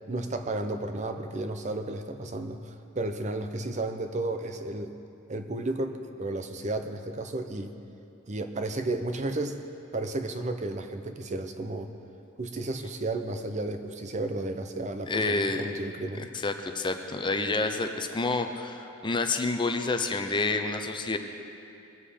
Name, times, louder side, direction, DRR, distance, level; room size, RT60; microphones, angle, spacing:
voice 1, 0.1-4.9 5.3-7.7 8.3-9.6 9.9-11.9 12.4-16.3, right 2 dB, 35° right, 7 dB, 0.7 m, -33 dB
voice 2, 15.1-15.6 16.4-21.2, left 3 dB, 25° left, 6 dB, 0.6 m, -28 dB
21.0 x 7.6 x 5.0 m, 2.7 s
head